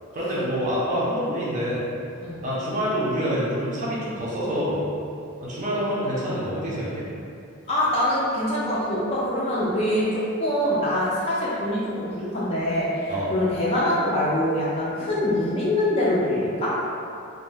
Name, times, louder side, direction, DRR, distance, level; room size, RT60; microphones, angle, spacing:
voice 1, 0.1-1.8 2.4-4.8 5.4-7.1 13.1-13.3, equal, 35° right, -7 dB, 0.4 m, -26 dB
voice 2, 7.7-16.8, left 1 dB, 25° left, -7 dB, 0.4 m, -24 dB
2.6 x 2.1 x 3.2 m, 2.6 s
head